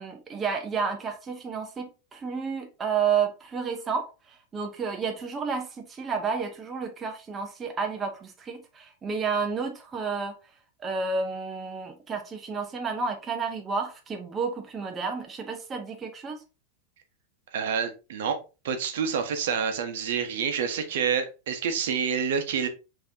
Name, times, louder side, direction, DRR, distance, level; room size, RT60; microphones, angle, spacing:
voice 1, 0.0-4.1 4.5-10.3 10.8-16.4, right 5 dB, 20° right, 0.6 m, -31 dB
voice 2, 17.5-18.4 18.6-22.7, right 6 dB, 75° right, 0.8 m, -28 dB
5.5 x 2.8 x 2.7 m
supercardioid pair, 155°, 0 cm